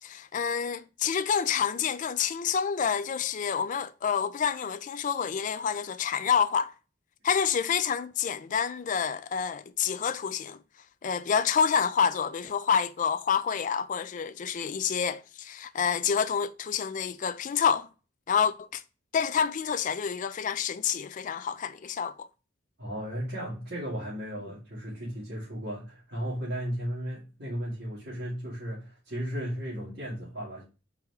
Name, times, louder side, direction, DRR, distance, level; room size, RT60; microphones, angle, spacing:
voice 1, 0.0-6.7 7.2-10.6 11.0-17.9 18.3-18.8 19.1-22.3, left 7 dB, 40° left, 0.3 m, -28 dB
voice 2, 22.8-30.6, equal, 55° right, 2.2 m, -35 dB
4.7 x 3.0 x 3.4 m
head